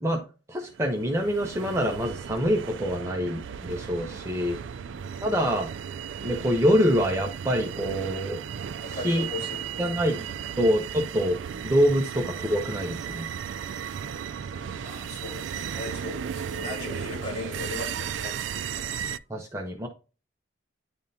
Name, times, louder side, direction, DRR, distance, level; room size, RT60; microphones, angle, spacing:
voice 1, 0.5-4.6 5.2-5.7 6.2-8.4 8.9-9.3 9.8-10.2 10.6-11.4 11.6-13.3 19.3-19.9, equal, 15° right, 0.8 m, -25 dB
sound 1, 0.7-19.2, right 8 dB, 75° right, 0.4 m, -35 dB
voice 2, 3.9-4.8 8.8-10.4 14.6-18.4, left 3 dB, 35° left, 3.7 m, -39 dB
10.5 x 3.6 x 2.8 m
head